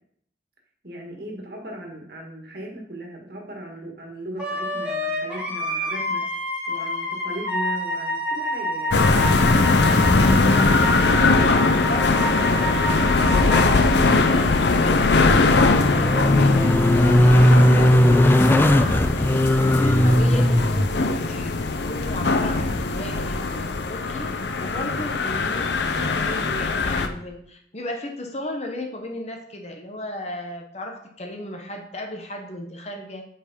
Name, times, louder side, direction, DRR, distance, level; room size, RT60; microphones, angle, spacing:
voice 1, 0.8-6.3 6.7-10.8, right 1 dB, 55° right, 0 dB, 1.8 m, -37 dB
Wind instrument woodwind instrument, 4.4-14.3, left 1 dB, 5° right, 2.6 m, -28 dB
sound 1, 8.9-27.1, left 3 dB, 65° left, 0.6 m, -21 dB
voice 2, 10.3-11.1 11.7-16.7 17.2-19.2 19.7-24.3 24.6-33.2, left 1 dB, 35° left, 3 dB, 1.1 m, -35 dB
sound 2, 11.5-12.2 12.5-12.6 15.1-20.9 23.8-23.9, left 1 dB, 10° left, 0.3 m, -18 dB
6.9 x 5.1 x 5.3 m, 0.67 s
head